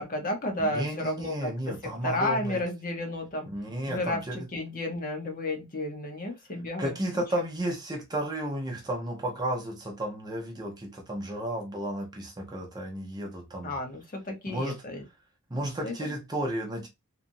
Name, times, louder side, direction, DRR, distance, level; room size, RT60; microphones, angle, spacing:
voice 1, 0.0-1.7 2.0-3.5 3.9-7.2 13.6-15.0 15.5-16.1, left 1 dB, 40° left, 0.8 m, -32 dB
voice 2, 0.6-2.6 3.5-4.5 6.8-13.7 14.5-14.8 15.5-16.9, right 1 dB, 20° right, 0.7 m, -33 dB
2.9 x 2.4 x 2.6 m
head